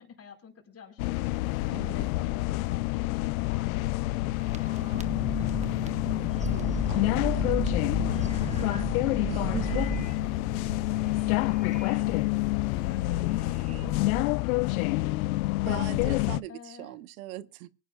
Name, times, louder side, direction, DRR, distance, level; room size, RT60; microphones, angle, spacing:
voice 1, 0.0-6.2 6.7-13.5 13.8-15.6 16.5-17.0, left 6 dB, 35° left, 4.9 m, -50 dB
sound 1, 1.0-16.4, left 20 dB, 75° left, 0.6 m, -28 dB
voice 2, 1.7-2.1 6.5-7.5 9.3-9.8 15.7-17.7, right 14 dB, 80° right, 0.9 m, -40 dB
sound 2, 4.4-14.2, right 3 dB, 15° right, 1.4 m, -36 dB
24.5 x 10.0 x 2.4 m
hypercardioid pair, 85°, 42 cm